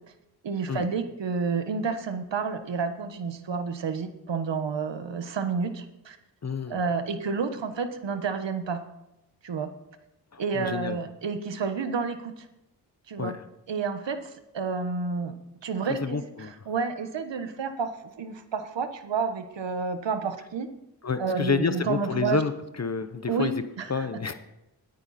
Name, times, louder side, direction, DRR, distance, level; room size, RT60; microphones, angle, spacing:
voice 1, 0.4-6.2 6.7-8.8 9.4-9.7 10.4-12.3 13.1-13.4 13.7-15.4 15.6-20.7 21.2-22.4 23.3-24.1, right 5 dB, 85° right, 8 dB, 1.3 m, -30 dB
voice 2, 6.4-6.8 10.3-11.0 13.2-13.4 16.0-16.5 21.0-23.6 23.9-24.3, left 5 dB, 40° left, 10 dB, 0.8 m, -29 dB
19.5 x 9.2 x 4.2 m, 0.90 s
wide cardioid pair, 130°, 42 cm